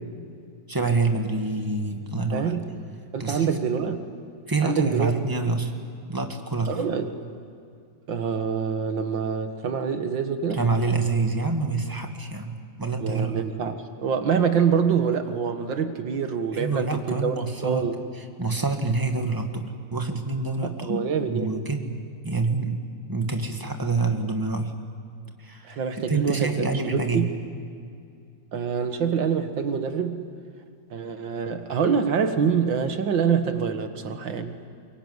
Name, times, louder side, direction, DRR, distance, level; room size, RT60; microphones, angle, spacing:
voice 1, 0.7-2.6 3.2-3.6 4.5-5.7 6.1-6.8 10.5-13.4 16.5-17.9 18.2-22.0 22.2-22.8 23.1-24.7 25.4-25.8 26.1-27.3, right 3 dB, 10° right, 4 dB, 1.8 m, -27 dB
voice 2, 2.3-2.7 3.1-4.1 4.6-5.1 6.7-7.3 8.1-10.6 13.0-18.0 20.6-21.5 25.7-27.3 28.5-30.3 30.9-34.6, right 6 dB, 80° right, 7 dB, 2.3 m, -26 dB
24.0 x 22.5 x 9.7 m, 2.4 s
omnidirectional pair, 2.0 m